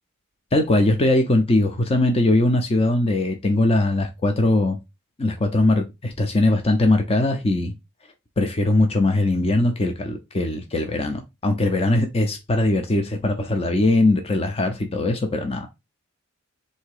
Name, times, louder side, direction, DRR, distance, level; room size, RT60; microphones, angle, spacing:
voice 1, 0.5-4.8 5.2-7.7 8.4-15.7, left 2 dB, 25° left, 0.5 m, -20 dB
3.6 x 2.8 x 4.7 m
head